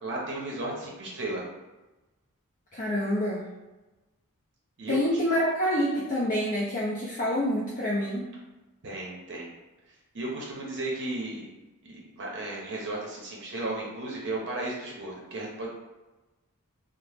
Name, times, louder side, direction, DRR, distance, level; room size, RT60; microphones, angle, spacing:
voice 1, 0.0-1.4 4.8-5.0 8.8-9.5 10.1-11.5 11.8-15.7, right 2 dB, 55° right, -3 dB, 0.6 m, -34 dB
voice 2, 2.7-3.5 4.9-8.3, equal, 35° left, -4 dB, 0.4 m, -27 dB
2.8 x 2.0 x 3.3 m, 1.1 s
head